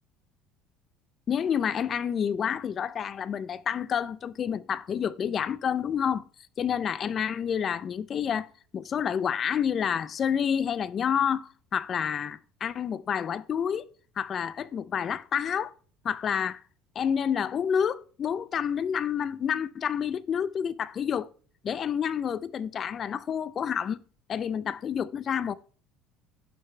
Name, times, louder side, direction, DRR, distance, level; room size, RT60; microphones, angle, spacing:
voice 1, 1.3-6.3 6.6-13.9 14.2-15.7 16.0-16.6 17.0-21.3 21.6-24.0 24.3-25.5, left 8 dB, 30° left, 0.5 m, -29 dB
11.5 x 6.9 x 3.3 m
cardioid pair, 150°, 0 cm